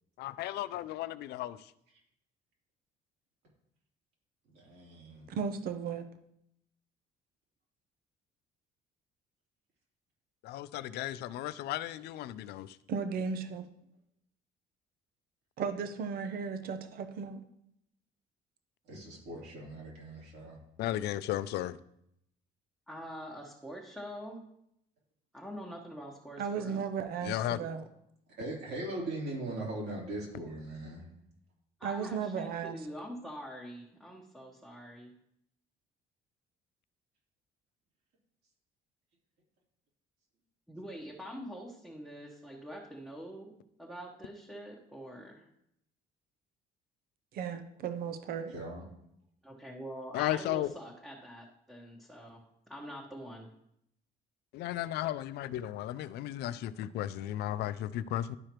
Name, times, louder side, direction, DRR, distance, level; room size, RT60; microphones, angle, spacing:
voice 1, 0.2-1.6 10.4-12.8 20.8-21.8 27.2-27.6 50.1-50.7 54.5-58.4, left 13 dB, 75° left, 16 dB, 0.4 m, -34 dB
voice 2, 4.5-5.3 18.9-20.6 27.6-27.7 28.4-31.1 48.5-48.8, right 2 dB, 80° right, -4 dB, 3.3 m, -40 dB
voice 3, 5.3-6.1 12.9-13.7 15.6-17.4 26.4-27.8 31.8-32.8 47.3-48.5, right 6 dB, 60° right, 9 dB, 0.7 m, -35 dB
voice 4, 22.9-24.5 25.3-26.8 31.8-35.1 40.7-45.5 49.4-53.5, equal, ahead, -4 dB, 1.2 m, -45 dB
11.5 x 4.9 x 3.0 m, 0.76 s
cardioid pair, 110°, 17 cm